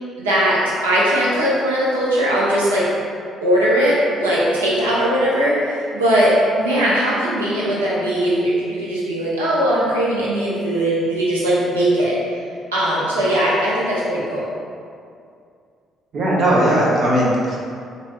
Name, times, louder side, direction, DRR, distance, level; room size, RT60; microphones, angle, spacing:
voice 1, 0.2-2.9 3.4-12.2 12.7-14.5, right 1 dB, 85° right, -8 dB, 0.6 m, -19 dB
voice 2, 16.1-17.6, right 1 dB, 50° right, -5 dB, 0.7 m, -17 dB
3.2 x 2.6 x 2.6 m, 2.3 s
figure-of-eight pair, 45°, 0 cm